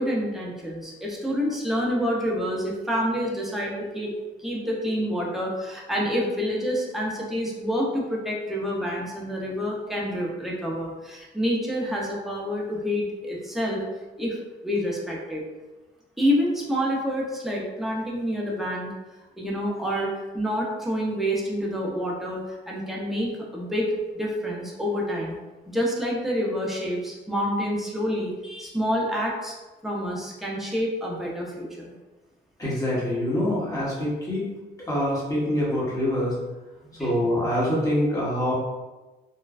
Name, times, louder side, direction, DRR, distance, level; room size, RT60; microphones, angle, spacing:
voice 1, 0.0-4.1 4.4-13.8 14.2-14.4 14.6-15.4 16.2-18.9 19.4-25.4 25.7-29.5 29.8-31.9 36.8-37.3, equal, ahead, -3 dB, 0.7 m, -28 dB
voice 2, 32.6-34.5 34.9-36.3 37.0-38.5, left 1 dB, 15° left, -7 dB, 1.2 m, -25 dB
3.1 x 2.2 x 2.4 m, 1.1 s
cardioid pair, 90°, 20 cm